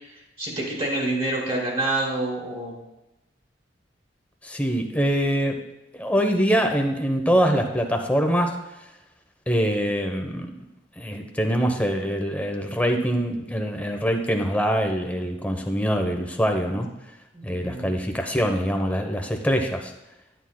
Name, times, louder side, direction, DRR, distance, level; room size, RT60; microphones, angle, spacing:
voice 1, 0.4-2.8 17.6-17.9, right 2 dB, 35° right, -2 dB, 2.8 m, -27 dB
voice 2, 4.4-5.6 5.9-8.6 9.5-10.5 11.0-16.9 17.4-19.9, equal, 10° left, 4 dB, 0.8 m, -24 dB
10.5 x 9.6 x 2.2 m, 0.95 s
head